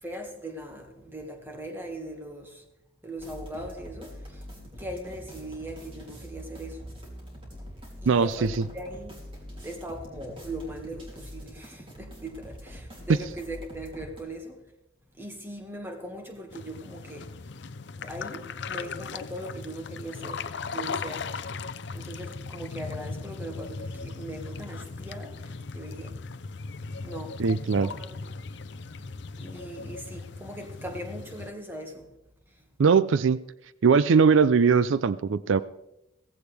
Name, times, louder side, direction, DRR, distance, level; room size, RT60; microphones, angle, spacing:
voice 1, 0.0-2.6 3.0-4.4 4.8-6.8 8.0-9.3 9.6-14.6 15.2-17.3 18.0-21.3 21.9-26.2 27.0-27.4 27.7-28.3 29.4-32.1, right 1 dB, 10° right, 1.8 m, -40 dB
sound 1, 3.2-14.2, equal, 25° right, 3.0 m, -44 dB
voice 2, 8.1-8.5 27.4-27.9 32.8-33.4 33.8-35.6, right 5 dB, 75° right, 0.4 m, -20 dB
sound 2, 16.5-31.5, left 4 dB, 60° left, 0.6 m, -38 dB
16.5 x 15.0 x 3.4 m
head